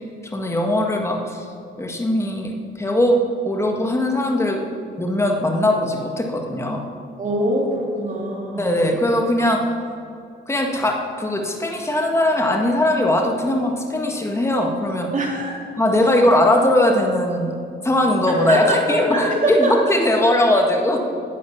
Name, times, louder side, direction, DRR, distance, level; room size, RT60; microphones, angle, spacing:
voice 1, 0.3-1.4 1.8-3.2 3.4-4.6 5.0-6.8 8.6-9.8 10.5-15.1 15.8-17.6 17.8-21.0, left 1 dB, 15° left, 2 dB, 1.6 m, -20 dB
voice 2, 7.2-8.7 15.1-15.6 18.5-19.8, right 1 dB, 40° right, -1 dB, 3.3 m, -23 dB
10.5 x 9.4 x 7.2 m, 2.4 s
cardioid pair, 90°, 20 cm